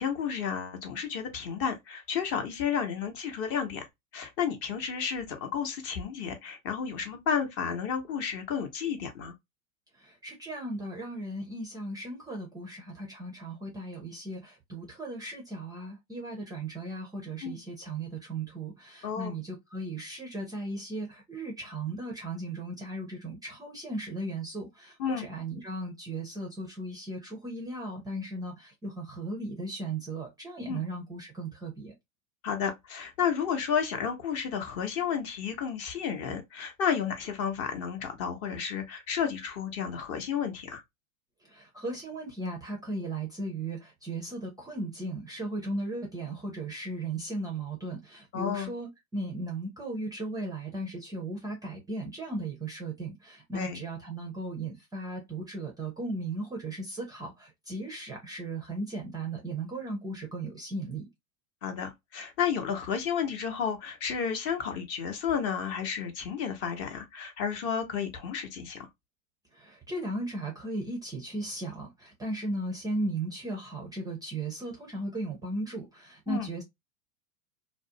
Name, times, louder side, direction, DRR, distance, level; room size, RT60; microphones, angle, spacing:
voice 1, 0.0-3.9 4.1-9.3 17.4-17.6 19.0-19.4 25.0-25.3 30.7-30.8 32.4-40.8 48.3-48.7 53.5-53.8 61.6-68.9 76.3-76.5, left 7 dB, 35° left, 0.8 m, -32 dB
voice 2, 10.0-31.9 41.4-61.1 69.5-76.6, right 2 dB, 10° right, 0.5 m, -36 dB
2.5 x 2.1 x 2.6 m
hypercardioid pair, 110°, 42 cm